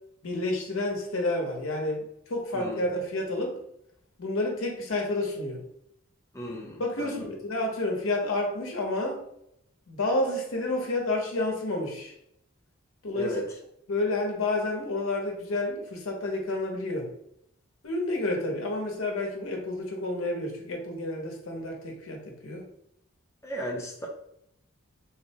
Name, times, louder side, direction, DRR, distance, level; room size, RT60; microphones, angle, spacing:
voice 1, 0.2-3.6 4.2-5.6 6.8-9.2 9.9-12.1 13.0-13.3 13.9-17.1 17.8-22.6, left 2 dB, 65° left, 1 dB, 0.8 m, -30 dB
voice 2, 6.3-7.3 13.1-13.4 23.4-24.1, equal, 15° left, -1 dB, 0.6 m, -35 dB
3.7 x 2.1 x 2.8 m, 0.75 s
head